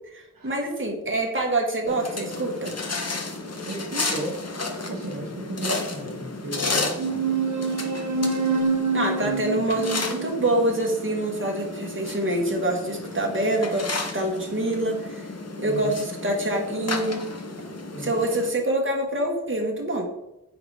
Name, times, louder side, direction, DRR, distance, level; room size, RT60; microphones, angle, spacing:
voice 1, 0.1-2.7 8.9-13.9 14.1-15.2 15.6-17.2 18.0-20.1, right 1 dB, 35° right, 1 dB, 1.3 m, -26 dB
sound 1, 1.9-18.5, left 3 dB, 50° left, 0.8 m, -33 dB
voice 2, 3.7-4.5 4.9-7.0 9.2-9.6 15.6-16.0 17.9-18.1, right 1 dB, 75° right, 0 dB, 1.0 m, -34 dB
sound 2, 7.0-11.9, right 4 dB, 60° right, 0.6 m, -27 dB
5.2 x 3.8 x 4.7 m, 0.89 s
wide cardioid pair, 50°, 34 cm